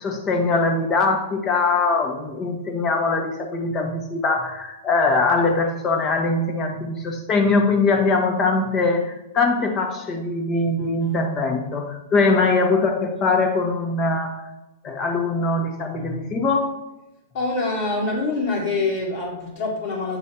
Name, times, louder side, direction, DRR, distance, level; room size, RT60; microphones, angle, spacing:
voice 1, 0.0-14.4 14.8-16.8, left 3 dB, 30° left, 3 dB, 1.3 m, -22 dB
voice 2, 17.3-20.2, left 3 dB, 60° left, -7 dB, 1.8 m, -25 dB
8.7 x 3.1 x 4.3 m, 0.97 s
hypercardioid pair, 115°, 0 cm